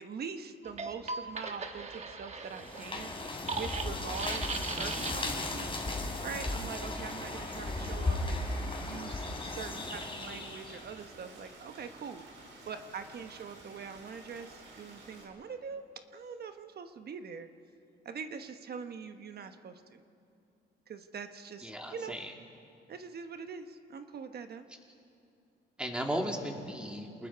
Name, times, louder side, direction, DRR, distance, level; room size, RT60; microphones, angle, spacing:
voice 1, 0.0-5.7 6.2-8.5 8.8-12.2 12.7-17.5 18.0-20.0 20.9-22.1 22.9-24.7, right 6 dB, 55° right, 8 dB, 1.2 m, -43 dB
sound 1, 0.6-5.4, right 4 dB, 35° right, 1.5 m, -39 dB
sound 2, 2.5-10.9, left 2 dB, 25° left, 3.4 m, -36 dB
Stream, 4.0-15.3, right 2 dB, 70° right, 4.8 m, -53 dB
voice 2, 21.6-22.3 25.8-27.3, equal, 5° right, 1 dB, 2.7 m, -36 dB
28.0 x 20.0 x 4.7 m, 2.5 s
cardioid pair, 90°, 20 cm